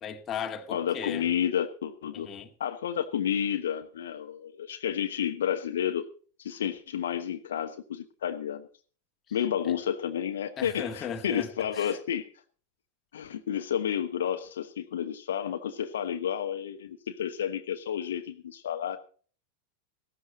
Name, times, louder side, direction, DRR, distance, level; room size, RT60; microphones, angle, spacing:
voice 1, 0.0-1.3 2.1-2.5 9.6-9.7 10.6-12.0, left 7 dB, 25° left, 1.7 m, -37 dB
voice 2, 0.7-2.3 2.6-6.1 6.4-8.7 9.3-12.2 13.1-19.0, left 9 dB, 60° left, 1.0 m, -31 dB
16.0 x 13.0 x 4.0 m
figure-of-eight pair, 90°, 0 cm